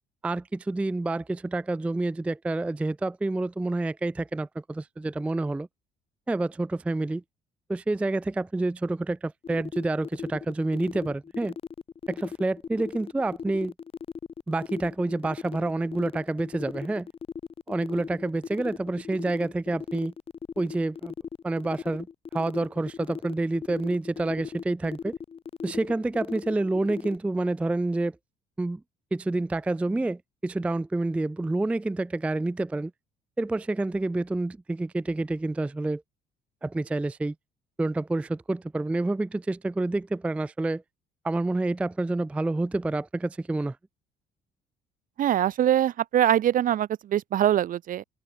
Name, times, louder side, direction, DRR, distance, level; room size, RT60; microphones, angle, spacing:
voice 1, 0.2-5.7 6.3-7.2 7.7-11.5 12.1-13.7 14.5-17.1 17.7-20.1 20.6-21.1 21.4-22.1 22.3-25.2 25.6-28.1 28.6-28.8 29.1-32.9 33.4-36.0 36.6-37.3 37.8-40.8 41.2-43.8, right 2 dB, 5° right, 0.3 m, -28 dB
sound 1, 9.4-27.2, left 6 dB, 35° left, 1.3 m, -37 dB
voice 2, 45.2-48.0, right 11 dB, 55° right, 0.9 m, -23 dB
open air
cardioid pair, 110°, 17 cm